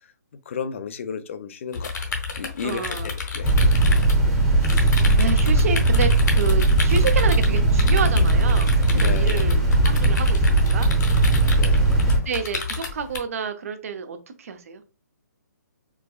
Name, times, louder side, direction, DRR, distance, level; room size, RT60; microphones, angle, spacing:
voice 1, 0.5-1.9 2.4-3.6 9.0-9.4 11.6-12.3, left 6 dB, 45° left, 0.4 m, -33 dB
sound 1, 1.7-13.2, left 4 dB, 75° left, 1.0 m, -31 dB
voice 2, 2.6-3.1 4.7-10.9 12.3-14.8, right 6 dB, 50° right, 0.6 m, -29 dB
sound 2, 3.4-12.2, right 2 dB, 5° right, 0.7 m, -18 dB
4.6 x 2.2 x 2.2 m
hypercardioid pair, 155°, 10 cm